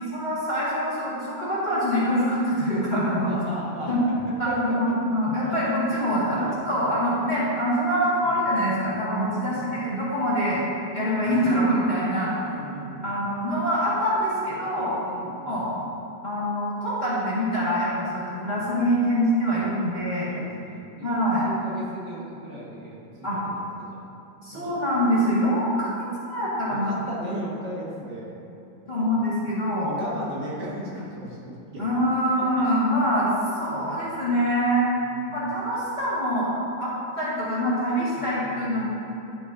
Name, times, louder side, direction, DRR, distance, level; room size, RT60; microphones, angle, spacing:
voice 1, 0.0-3.3 3.9-4.0 4.4-10.6 10.9-12.3 13.0-15.0 15.4-15.7 16.2-20.3 21.0-21.4 23.2-23.4 24.4-25.9 26.3-27.0 28.9-29.9 31.8-34.9 35.3-38.8, equal, 25° left, -10 dB, 1.7 m, -24 dB
voice 2, 3.3-5.0 5.4-5.5 6.4-6.5 8.2-8.4 9.4-9.8 11.2-11.3 12.4-13.2 15.0-15.7 18.6-18.7 19.5-20.0 20.3-21.1 21.4-24.0 24.5-24.8 26.7-28.3 29.1-29.2 29.7-31.8 32.4-32.7 33.8-33.9 35.0-35.3 38.1-38.8, equal, 70° right, -5 dB, 2.0 m, -37 dB
10.5 x 6.5 x 2.6 m, 2.9 s
omnidirectional pair, 2.0 m